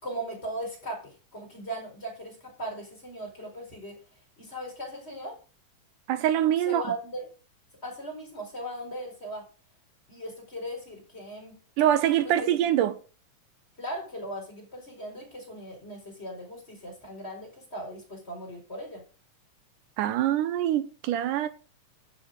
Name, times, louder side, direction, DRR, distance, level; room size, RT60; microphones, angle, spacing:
voice 1, 0.0-4.0 4.4-5.4 6.6-7.3 7.8-9.5 10.1-11.6 12.2-12.5 13.8-19.0, right 1 dB, 20° left, 4.8 m, -38 dB
voice 2, 6.1-6.8 11.8-13.0 20.0-21.5, right 11 dB, 80° right, 2.2 m, -24 dB
13.0 x 6.1 x 6.5 m
omnidirectional pair, 3.7 m